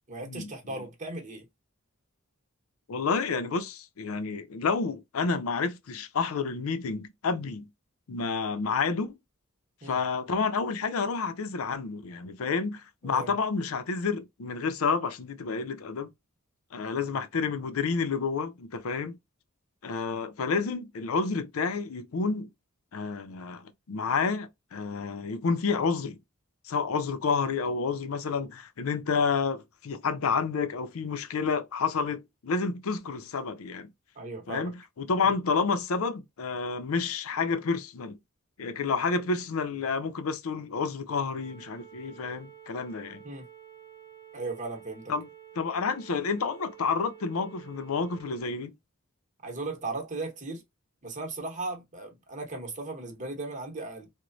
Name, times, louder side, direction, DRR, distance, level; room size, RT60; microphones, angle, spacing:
voice 1, 0.1-1.5 9.8-10.0 13.0-13.3 34.1-34.7 35.2-35.3 43.2-43.4 44.3-45.1 49.4-50.6 51.0-54.1, right 3 dB, 35° right, 0.9 m, -37 dB
voice 2, 2.9-7.7 8.1-9.2 9.8-16.1 16.7-19.2 19.8-22.5 22.9-26.2 26.7-33.9 34.5-38.2 38.6-43.2 45.1-45.3 45.6-48.7, left 5 dB, 75° left, 0.5 m, -29 dB
sound 1, 41.4-48.4, right 10 dB, 15° left, 0.6 m, -50 dB
3.0 x 2.1 x 2.5 m
head